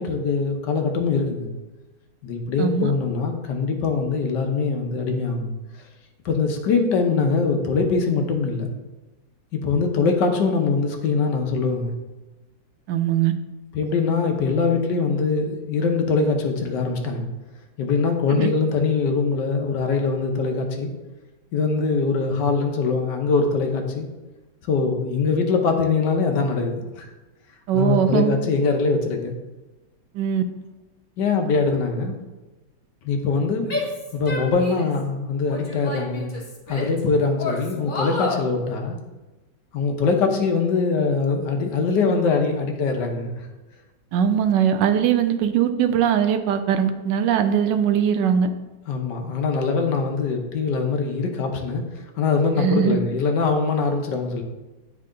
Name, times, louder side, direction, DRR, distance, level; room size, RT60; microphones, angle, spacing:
voice 1, 0.0-1.5 2.2-5.5 6.2-8.7 9.5-11.9 13.7-17.3 17.8-20.9 21.5-24.1 24.7-27.1 27.7-29.4 31.2-32.2 33.0-33.8 34.1-36.3 36.7-39.0 39.7-43.5 48.9-54.4, left 4 dB, 65° left, 4 dB, 1.4 m, -22 dB
voice 2, 2.6-2.9 12.9-13.3 18.4-18.5 27.7-28.3 30.1-30.4 44.1-48.5 52.6-53.0, right 8 dB, 75° right, 8 dB, 1.1 m, -20 dB
Female speech woman speaking / Yell, 33.7-35.0 35.5-37.0 37.4-38.5, left 3 dB, 35° left, 1.0 m, -30 dB
9.4 x 3.8 x 3.7 m, 1.1 s
omnidirectional pair, 2.1 m